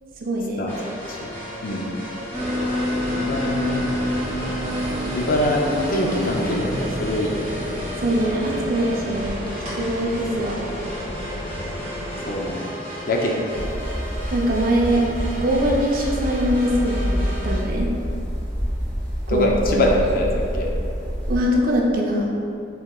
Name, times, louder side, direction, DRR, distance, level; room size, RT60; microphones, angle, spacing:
voice 1, 0.2-0.7 8.0-9.4 9.8-10.6 14.3-15.1 15.4-17.9 19.3-19.9 21.3-22.3, equal, 45° right, -2 dB, 0.5 m, -22 dB
sound 1, 0.7-17.6, equal, 10° left, 1.1 m, -35 dB
voice 2, 1.6-1.9 3.2-3.9 5.1-7.8 12.2-12.7 13.1-13.8 19.3-20.3 20.5-20.7, left 1 dB, 45° left, 0 dB, 0.4 m, -24 dB
sound 2, 2.3-12.5, left 1 dB, 30° right, 1.2 m, -28 dB
sound 3, 13.5-21.4, equal, 70° left, 1.4 m, -27 dB
4.6 x 3.6 x 2.3 m, 2.7 s
head